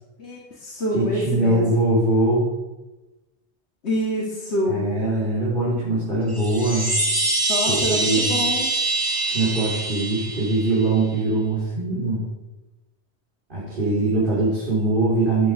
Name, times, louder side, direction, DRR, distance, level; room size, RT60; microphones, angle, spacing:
voice 1, 0.2-1.6 3.8-4.8 7.5-8.7, left 1 dB, 70° left, -3 dB, 2.4 m, -26 dB
voice 2, 0.9-2.5 4.7-6.9 7.7-8.3 9.2-12.2 13.5-15.5, right 2 dB, 45° right, -8 dB, 4.5 m, -22 dB
Chime, 6.3-11.0, right 2 dB, 20° right, 1.9 m, -24 dB
13.5 x 9.4 x 6.4 m, 1.1 s
omnidirectional pair, 1.2 m